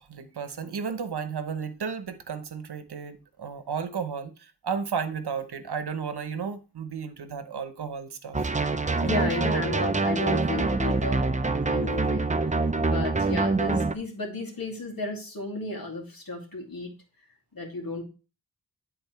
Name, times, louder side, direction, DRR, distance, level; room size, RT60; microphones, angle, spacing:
voice 1, 0.0-8.5 8.9-9.2, right 6 dB, 70° right, 0.9 m, -33 dB
sound 1, 8.3-13.9, right 3 dB, 20° right, 0.5 m, -25 dB
voice 2, 9.0-11.3 11.6-12.3 12.8-16.9 17.5-18.0, left 2 dB, 55° left, 2.4 m, -33 dB
10.5 x 3.9 x 4.5 m
wide cardioid pair, 95°, 41 cm